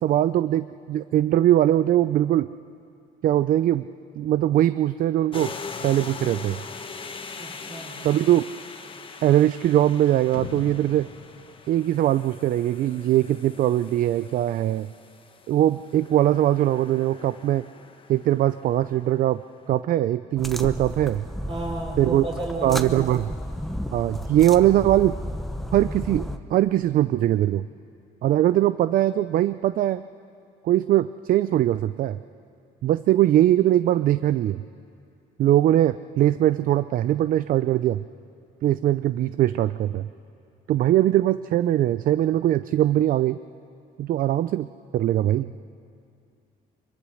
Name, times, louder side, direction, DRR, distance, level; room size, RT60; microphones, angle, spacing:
voice 1, 0.0-2.5 3.2-3.9 4.2-5.5 5.8-6.6 8.0-8.4 9.2-11.1 11.7-14.9 15.5-17.6 18.1-19.4 19.7-21.3 22.0-22.2 22.6-23.3 23.9-25.2 25.7-27.7 28.2-30.0 30.6-32.2 32.8-34.6 35.4-38.0 38.6-40.1 40.7-43.4 44.0-44.7 44.9-45.5, right 13 dB, 55° right, 14 dB, 0.4 m, -21 dB
sound 1, 5.3-19.4, left 5 dB, 30° left, 1.4 m, -42 dB
voice 2, 7.4-7.9 21.5-23.2, right 2 dB, 30° right, 1 dB, 4.2 m, -33 dB
sound 2, 10.3-12.9, left 7 dB, 65° left, 1.7 m, -41 dB
sound 3, 20.4-26.4, equal, ahead, 0.9 m, -33 dB
23.0 x 22.0 x 6.5 m, 2.5 s
cardioid pair, 110°, 17 cm